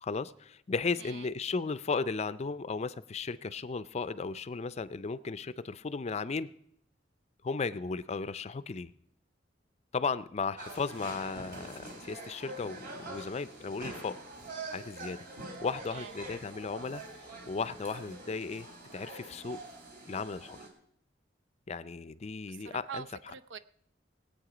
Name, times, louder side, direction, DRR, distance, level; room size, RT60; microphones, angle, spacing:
voice 1, 0.0-6.5 7.4-8.9 9.9-14.2 14.7-15.3 15.6-17.0 17.5-18.7 18.9-19.6 20.1-20.7 21.7-23.0, left 4 dB, 35° left, 15 dB, 0.4 m, -35 dB
voice 2, 1.0-1.3 15.9-16.2 22.5-23.6, right 6 dB, 80° right, 13 dB, 0.6 m, -44 dB
sound 1, 10.6-20.7, right 2 dB, 55° right, 3.1 m, -45 dB
20.0 x 8.5 x 5.0 m, 0.71 s
head